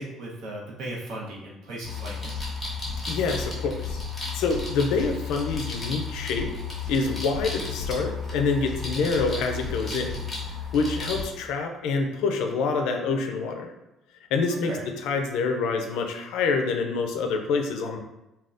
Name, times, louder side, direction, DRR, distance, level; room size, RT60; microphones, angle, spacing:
voice 1, 0.0-2.3 14.5-14.9, right 1 dB, 65° right, -4 dB, 0.8 m, -37 dB
sound 1, 1.8-11.3, left 4 dB, 5° left, 0.8 m, -33 dB
voice 2, 3.1-4.0 4.3-6.5 6.9-10.3 10.7-13.7 14.3-14.8 15.0-18.0, left 4 dB, 80° left, 5 dB, 0.4 m, -26 dB
3.4 x 2.2 x 2.5 m, 0.92 s
cardioid pair, 170°, 0 cm